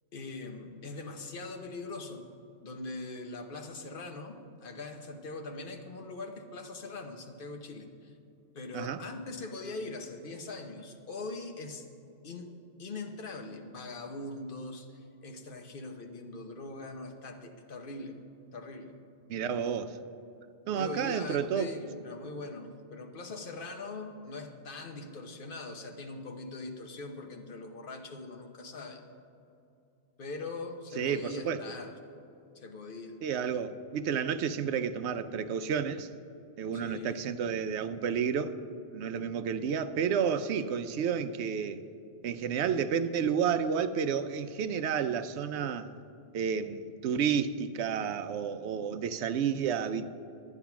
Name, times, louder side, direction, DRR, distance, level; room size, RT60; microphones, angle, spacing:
voice 1, 0.1-2.3 2.6-8.1 8.5-11.9 12.2-12.5 12.8-18.2 18.5-18.9 20.7-29.1 30.2-31.9 32.5-33.2 36.7-37.2, left 3 dB, 50° left, 4 dB, 1.1 m, -42 dB
voice 2, 19.3-20.0 20.7-21.7 31.0-31.6 33.2-36.1 36.6-38.6 38.9-41.8 42.2-45.9 46.3-50.1, right 7 dB, 70° right, 10 dB, 0.8 m, -31 dB
11.0 x 8.8 x 5.8 m, 2.7 s
omnidirectional pair, 1.3 m